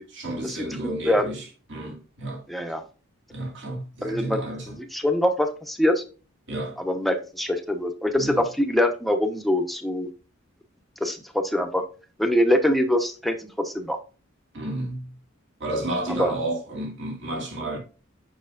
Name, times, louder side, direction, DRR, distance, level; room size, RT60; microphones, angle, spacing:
voice 1, 0.1-2.4 3.3-4.8 6.5-6.8 8.1-8.4 14.5-15.1 15.6-17.8, right 1 dB, 60° right, 2.5 m, -31 dB
voice 2, 2.5-2.8 4.0-4.4 4.9-6.0 6.8-10.1 11.0-11.8 12.2-14.0 16.2-16.3, left 1 dB, ahead, 0.9 m, -23 dB
6.5 x 6.2 x 2.5 m
head